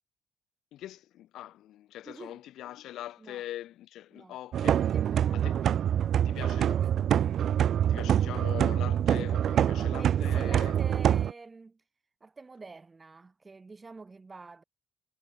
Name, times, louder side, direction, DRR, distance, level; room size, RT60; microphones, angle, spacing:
voice 1, 0.7-4.8 5.3-5.6 6.2-6.8 7.9-10.8, left 13 dB, 85° left, 4.5 m, -42 dB
voice 2, 2.1-2.4 3.2-3.4 4.1-4.4 4.7-7.1 9.4-11.8 12.2-14.6, right 3 dB, 25° right, 6.2 m, -48 dB
sound 1, 4.5-11.3, right 10 dB, 65° right, 0.4 m, -25 dB
cardioid pair, 90°, 0 cm